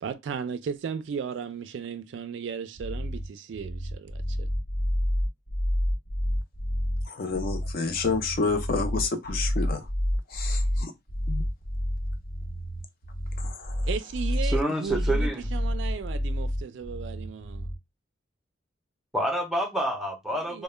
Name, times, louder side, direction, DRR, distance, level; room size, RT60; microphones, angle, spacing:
voice 1, 0.0-4.5 13.8-17.7 20.5-20.6, right 6 dB, 65° right, 0.3 m, -35 dB
sound 1, 2.8-17.8, equal, 85° left, 0.9 m, -29 dB
voice 2, 7.1-9.9 10.3-10.9 11.3-11.4 13.4-13.9, left 4 dB, 45° left, 0.4 m, -29 dB
voice 3, 14.4-15.5 19.1-20.6, right 1 dB, ahead, 0.5 m, -28 dB
2.1 x 2.1 x 3.1 m
head